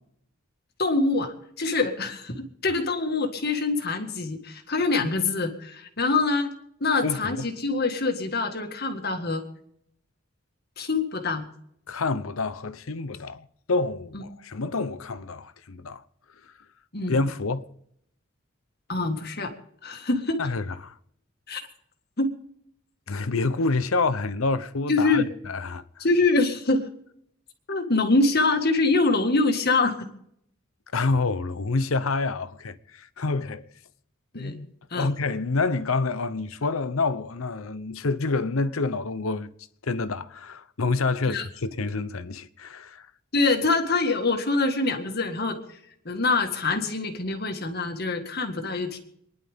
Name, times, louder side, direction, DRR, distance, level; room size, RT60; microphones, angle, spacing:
voice 1, 0.8-6.5 6.8-9.4 10.8-11.5 14.1-14.2 16.9-17.2 18.9-19.5 19.8-20.4 21.5-21.7 22.2-22.3 24.9-25.3 26.0-26.9 27.7-30.1 34.3-34.6 34.9-35.1 41.3-41.5 43.3-45.6 46.1-49.0, left 3 dB, 50° left, 1.9 m, -25 dB
voice 2, 7.0-7.4 11.9-16.0 17.1-17.6 20.4-20.9 23.1-25.8 30.9-33.7 34.3-39.5 39.8-43.1, left 3 dB, 80° left, 0.8 m, -28 dB
28.0 x 11.0 x 3.6 m
head